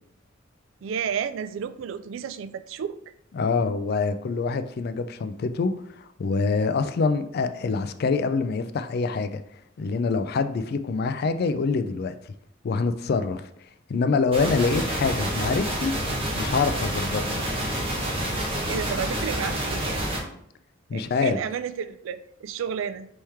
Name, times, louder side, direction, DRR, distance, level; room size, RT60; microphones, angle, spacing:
voice 1, 0.8-3.0 18.6-20.0 20.9-23.1, right 7 dB, 90° right, 12 dB, 0.3 m, -31 dB
voice 2, 3.4-9.4 9.8-12.1 12.6-13.5 13.9-15.9 16.3-17.2 20.9-21.4, left 4 dB, 55° left, 10 dB, 0.3 m, -25 dB
sound 1, 14.3-20.2, right 1 dB, 30° right, 1.0 m, -28 dB
4.4 x 3.1 x 3.5 m, 0.70 s
head